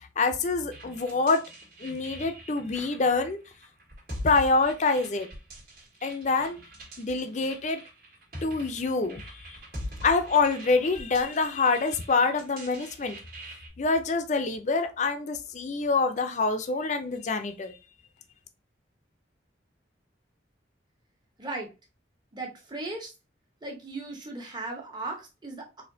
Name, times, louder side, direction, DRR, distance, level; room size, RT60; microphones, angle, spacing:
voice 1, 0.2-1.4 1.8-3.4 4.2-5.3 6.0-6.6 7.0-7.8 8.4-9.2 10.0-13.2 13.8-17.7, left 3 dB, 40° left, 0.5 m, -26 dB
sound 1, 0.7-13.7, equal, 55° right, 1.5 m, -44 dB
voice 2, 21.4-21.7 22.3-23.1 23.6-25.8, right 2 dB, 25° right, 0.8 m, -37 dB
4.2 x 2.7 x 2.6 m
head